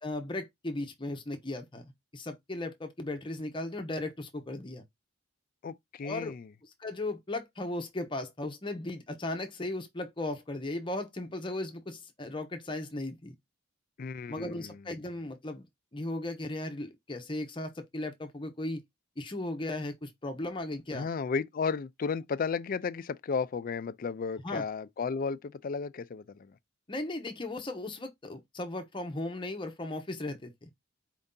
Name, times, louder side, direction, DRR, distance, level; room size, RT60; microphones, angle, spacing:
voice 1, 0.0-4.8 6.0-6.3 6.8-13.3 14.3-15.7 15.9-18.8 19.2-21.1 24.4-24.6 26.9-30.7, left 2 dB, 25° left, 0.7 m, -36 dB
voice 2, 5.6-6.5 14.0-14.8 20.9-26.6, left 5 dB, 45° left, 0.3 m, -34 dB
4.5 x 2.7 x 3.7 m
head